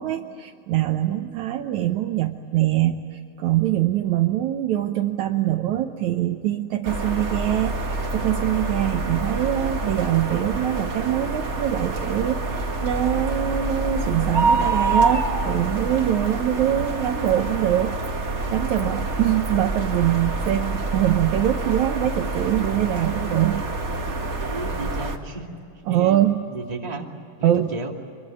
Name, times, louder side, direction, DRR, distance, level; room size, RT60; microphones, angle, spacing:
voice 1, 0.0-3.1 3.4-18.0 18.5-23.7 25.9-26.4 27.4-27.7, right 12 dB, 70° right, 6 dB, 2.1 m, -23 dB
sound 1, 6.8-25.2, right 2 dB, 30° right, 1.4 m, -26 dB
voice 2, 24.4-25.5 25.9-26.2 26.5-27.1 27.4-27.9, right 2 dB, 15° right, 0 dB, 2.2 m, -33 dB
26.0 x 23.0 x 9.3 m, 2.6 s
omnidirectional pair, 3.8 m